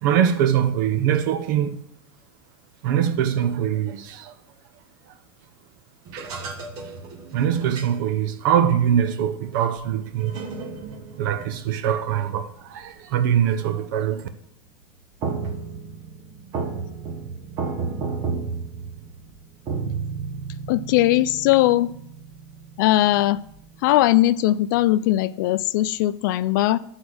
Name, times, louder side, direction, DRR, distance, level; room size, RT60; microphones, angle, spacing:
voice 1, 0.0-1.8 2.8-4.3 6.1-6.3 7.3-10.4 11.2-14.3, right 9 dB, 60° right, 0.8 m, -23 dB
sound 1, 6.0-8.8 9.5-13.3 13.6-14.0 14.7-24.2, right 4 dB, 35° right, 1.0 m, -34 dB
voice 2, 20.7-21.9 22.8-23.4 23.8-26.8, left 15 dB, 60° left, 0.4 m, -19 dB
9.6 x 4.1 x 6.2 m
supercardioid pair, 165°, 12 cm